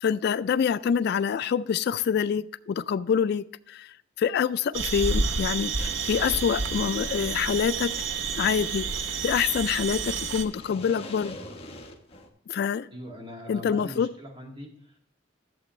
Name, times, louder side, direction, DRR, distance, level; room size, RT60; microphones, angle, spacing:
voice 1, 0.0-7.9 8.4-8.9 9.2-11.4 12.5-12.9 13.5-14.1, left 7 dB, 60° left, 15 dB, 0.3 m, -26 dB
sound 1, 4.7-10.4, right 4 dB, 80° right, 0.8 m, -30 dB
sound 2, 5.8-12.3, left 1 dB, 30° left, 1.3 m, -45 dB
voice 2, 12.9-15.0, equal, 25° right, 0 dB, 2.1 m, -41 dB
11.5 x 7.5 x 3.1 m, 0.72 s
head